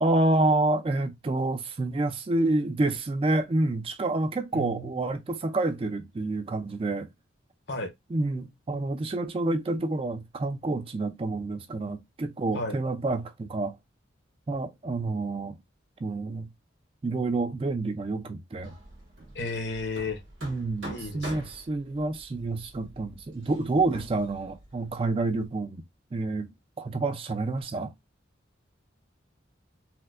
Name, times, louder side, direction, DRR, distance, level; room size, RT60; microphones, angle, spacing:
voice 1, 0.0-7.1 8.1-13.8 14.5-15.6 16.0-16.5 17.0-18.8 20.4-25.8 26.1-27.9, right 2 dB, 30° right, 0.3 m, -28 dB
voice 2, 4.5-5.0 7.7-7.9 12.5-12.8 19.3-20.2 20.9-21.5, left 2 dB, 65° left, 0.8 m, -33 dB
Hammer, 18.6-25.5, right 1 dB, 90° right, 1.4 m, -45 dB
4.2 x 2.1 x 2.4 m
head